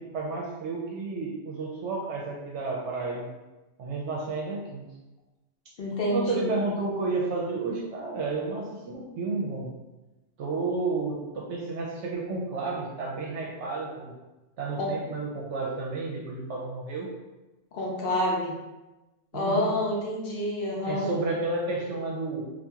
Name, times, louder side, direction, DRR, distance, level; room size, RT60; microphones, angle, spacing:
voice 1, 0.0-3.3 3.8-4.9 6.1-9.7 10.4-14.1 14.6-17.1 19.3-19.7 20.9-22.4, right 3 dB, 70° right, -2 dB, 0.8 m, -31 dB
voice 2, 5.8-6.5 14.8-14.9 17.7-18.5 19.3-21.1, left 1 dB, 55° left, -3 dB, 0.7 m, -28 dB
2.8 x 2.4 x 3.4 m, 1.1 s
omnidirectional pair, 1.3 m